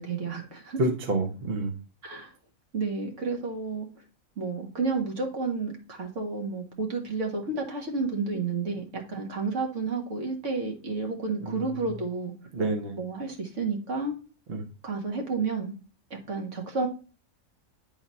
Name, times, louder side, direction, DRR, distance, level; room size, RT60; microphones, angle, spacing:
voice 1, 0.0-0.8 2.0-2.3 2.7-3.9 4.4-12.3 13.0-14.1 14.8-15.7 16.1-16.9, right 4 dB, 65° right, 1 dB, 1.9 m, -31 dB
voice 2, 0.8-1.8 11.4-11.8 12.5-13.0 14.5-14.6, right 2 dB, 50° right, 2 dB, 1.1 m, -29 dB
9.6 x 4.0 x 4.2 m, 0.36 s
omnidirectional pair, 1.4 m